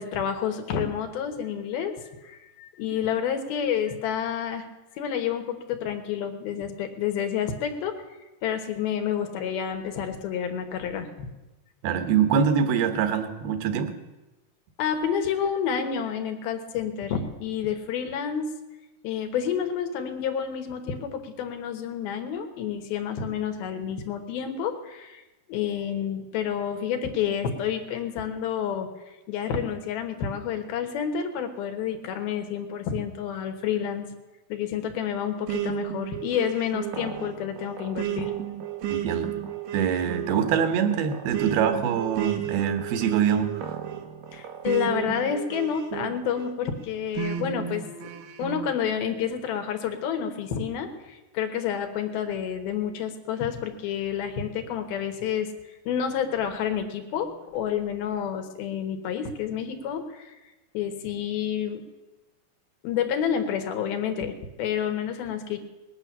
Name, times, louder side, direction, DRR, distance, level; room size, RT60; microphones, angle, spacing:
voice 1, 0.0-4.7 4.9-11.3 14.8-18.5 19.0-25.2 25.5-34.1 34.5-38.3 44.3-48.1 48.4-60.4 60.7-61.8 62.8-65.6, left 8 dB, 80° left, 6 dB, 3.1 m, -29 dB
voice 2, 11.8-13.9 38.9-39.3 39.7-43.5, right 7 dB, 85° right, 9 dB, 3.2 m, -24 dB
sound 1, 35.5-46.5 47.2-48.7, right 11 dB, 70° right, 2.5 m, -33 dB
19.5 x 9.0 x 7.3 m, 1.1 s
omnidirectional pair, 4.4 m